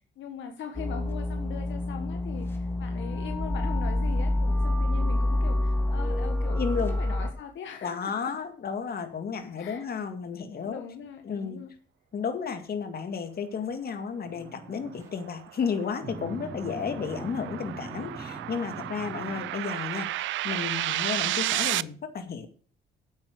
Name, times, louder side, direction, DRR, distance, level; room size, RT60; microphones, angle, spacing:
voice 1, 0.2-8.4 9.6-9.8 10.5-11.7 12.4-12.6, left 8 dB, 70° left, 5 dB, 1.6 m, -41 dB
sound 1, 0.7-7.3, left 1 dB, 10° left, 3.0 m, -27 dB
voice 2, 6.6-6.9 7.8-10.8 11.3-11.6 12.1-20.1 20.4-22.5, left 6 dB, 50° left, 8 dB, 2.1 m, -33 dB
sound 2, 14.2-15.1 16.0-19.5, right 2 dB, 15° right, 4.1 m, -41 dB
sound 3, 14.9-21.8, right 15 dB, 75° right, 0.4 m, -32 dB
9.0 x 8.7 x 6.5 m, 0.43 s
cardioid pair, 90°, 20 cm